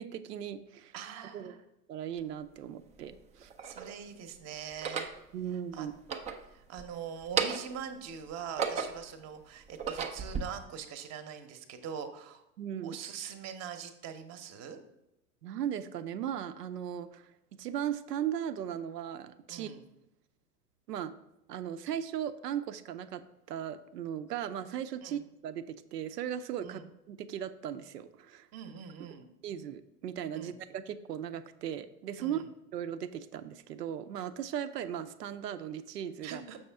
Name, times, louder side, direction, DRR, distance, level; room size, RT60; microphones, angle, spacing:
voice 1, 0.0-0.9 1.3-1.5 1.9-3.5 5.3-5.9 12.6-13.0 15.4-17.3 17.6-19.7 20.9-21.1 21.5-26.8 27.1-28.5 29.4-32.5 32.7-36.4, right 9 dB, 85° right, 11 dB, 0.6 m, -37 dB
voice 2, 0.9-1.6 3.6-5.1 5.7-5.9 6.5-12.4 12.8-14.8 19.5-19.8 25.0-25.2 26.6-26.9 28.5-29.3 30.3-30.6 32.2-32.5 36.2-36.6, right 7 dB, 35° right, 8 dB, 0.9 m, -43 dB
sound 1, 2.2-2.3 3.1-3.9 4.7-5.2 5.9-6.9 7.2-7.8 8.3-9.1 9.6-10.4, right 6 dB, 15° right, 0.4 m, -34 dB
6.9 x 5.5 x 3.4 m, 0.88 s
hypercardioid pair, 95°, 47 cm